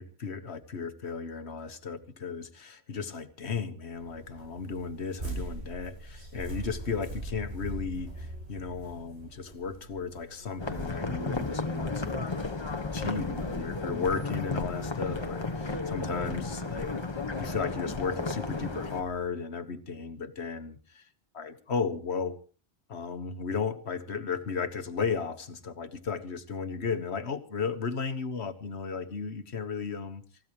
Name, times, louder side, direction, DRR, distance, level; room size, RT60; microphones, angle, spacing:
voice 1, 0.0-17.0 17.4-21.1 21.3-22.4 22.9-30.2, left 5 dB, 85° left, 10 dB, 1.7 m, -35 dB
sound 1, 3.9-19.3, right 2 dB, 85° right, 6.4 m, -44 dB
sound 2, 10.6-19.0, left 3 dB, 25° left, 1.4 m, -33 dB
28.5 x 15.0 x 3.0 m, 0.37 s
omnidirectional pair, 1.1 m